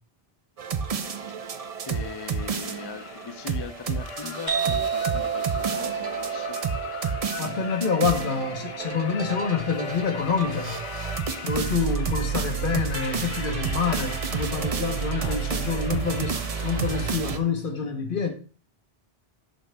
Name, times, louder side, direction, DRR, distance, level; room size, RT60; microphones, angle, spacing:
sound 1, 0.6-17.4, right 6 dB, 45° right, 0.6 m, -31 dB
voice 1, 1.8-6.6 15.2-15.6, left 6 dB, 40° left, 0.4 m, -39 dB
sound 2, 2.0-17.2, left 8 dB, 80° left, 0.9 m, -41 dB
sound 3, 4.5-11.9, right 7 dB, 20° right, 1.3 m, -32 dB
voice 2, 7.4-10.8 11.4-18.3, left 6 dB, 60° left, 1.3 m, -27 dB
11.0 x 3.8 x 3.3 m
omnidirectional pair, 1.0 m